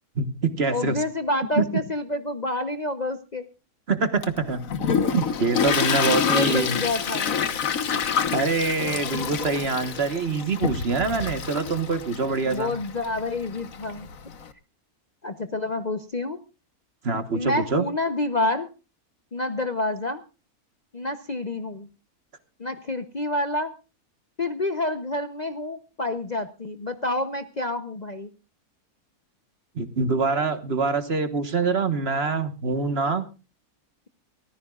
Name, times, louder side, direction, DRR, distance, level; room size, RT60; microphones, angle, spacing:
voice 1, 0.2-1.0 1.6-1.7 3.9-4.6 5.1-6.8 8.3-12.8 17.0-17.8 29.7-33.3, right 4 dB, 45° right, 10 dB, 1.5 m, -25 dB
voice 2, 0.7-3.4 5.6-5.7 6.1-7.4 12.4-14.1 15.2-16.4 17.3-18.7 19.3-20.2 20.9-21.9 22.6-23.7 24.4-28.3, left 2 dB, 35° left, 8 dB, 0.8 m, -28 dB
Toilet flush, 4.2-14.5, left 7 dB, 65° left, 1.5 m, -27 dB
23.5 x 15.0 x 2.4 m, 0.32 s
omnidirectional pair, 1.6 m